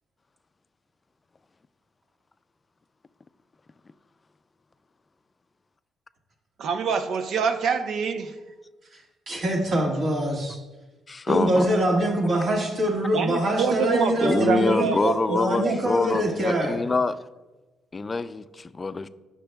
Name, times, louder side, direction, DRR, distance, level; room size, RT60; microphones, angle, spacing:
voice 1, 6.6-8.3 13.1-15.4 15.6-15.8, right 6 dB, 70° right, 0.7 m, -25 dB
voice 2, 9.3-10.6 11.3-14.9 15.3-16.8, right 1 dB, 55° right, 1.7 m, -24 dB
voice 3, 11.1-11.7 14.2-17.2 17.9-19.1, left 3 dB, 30° left, 0.4 m, -25 dB
18.0 x 6.1 x 2.3 m
cardioid pair, 90°, 0 cm